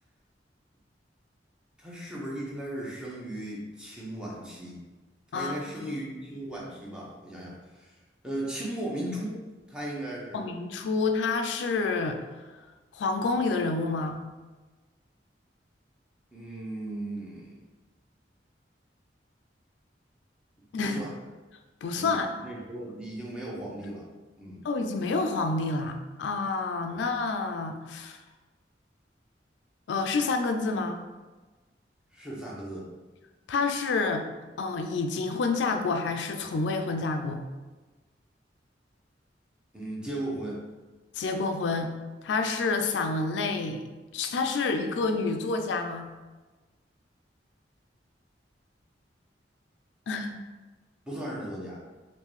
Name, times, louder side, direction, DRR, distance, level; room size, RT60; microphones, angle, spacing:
voice 1, 1.8-4.8 5.3-7.9 8.2-9.4 9.7-10.4 16.3-17.6 20.8-21.1 21.9-24.1 24.4-24.6 26.9-27.0 32.1-32.9 39.7-40.6 51.1-51.8, right 1 dB, 5° right, -5 dB, 0.7 m, -36 dB
voice 2, 5.3-5.9 10.3-12.5 12.9-14.2 20.7-21.0 21.8-22.3 24.6-28.2 29.9-31.0 33.5-34.3 34.6-37.4 41.1-41.9 42.2-43.9 44.1-46.1 50.1-50.4, left 3 dB, 80° left, 5 dB, 0.3 m, -28 dB
3.6 x 2.6 x 3.0 m, 1.2 s
head